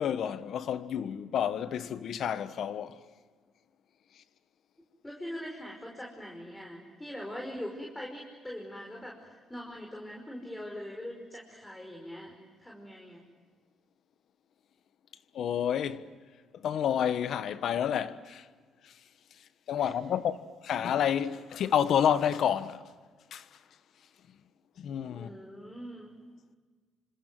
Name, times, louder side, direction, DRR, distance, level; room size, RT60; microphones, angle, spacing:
voice 1, 0.0-3.0 4.1-4.2 15.3-16.1 16.5-18.5 18.8-19.0 19.3-22.9 23.3-23.6 24.8-25.3, left 9 dB, 70° left, 1.3 m, -30 dB
voice 2, 5.0-12.3 12.6-13.3 19.8-19.9 25.1-26.1, equal, 10° left, 5.3 m, -42 dB
28.0 x 26.0 x 7.7 m
cardioid pair, 90°, 0 cm